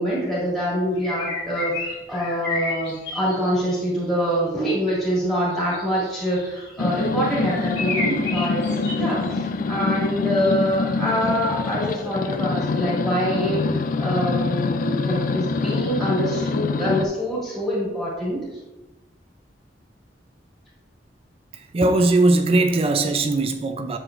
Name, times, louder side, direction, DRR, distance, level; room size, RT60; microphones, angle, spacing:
voice 1, 0.0-18.4, equal, 5° left, -9 dB, 2.0 m, -25 dB
sound 1, 1.0-3.7 5.4-7.1 7.4-9.3, left 3 dB, 75° left, 2.3 m, -31 dB
sound 2, 6.8-17.1, left 4 dB, 50° left, 0.4 m, -25 dB
voice 2, 21.5-24.0, right 2 dB, 35° right, 7 dB, 0.4 m, -20 dB
7.7 x 6.6 x 2.5 m, 1.1 s
head